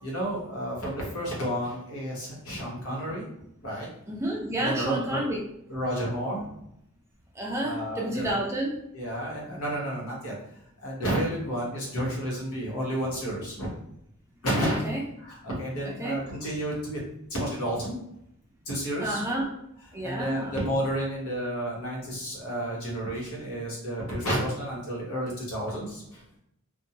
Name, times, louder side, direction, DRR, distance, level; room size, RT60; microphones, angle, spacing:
voice 1, 0.0-3.3 3.6-3.9 4.6-5.2 5.7-6.5 7.6-8.3 8.9-10.3 10.8-13.7 14.4-14.8 15.2-17.0 17.3-18.0 18.7-19.2 20.0-26.2, equal, 75° left, -4 dB, 1.1 m, -31 dB
voice 2, 4.1-5.4 7.4-8.8 14.8-15.0 16.0-16.2 19.0-19.5 19.9-20.6, right 1 dB, 10° right, -2 dB, 0.4 m, -30 dB
2.6 x 2.2 x 2.8 m, 0.76 s
head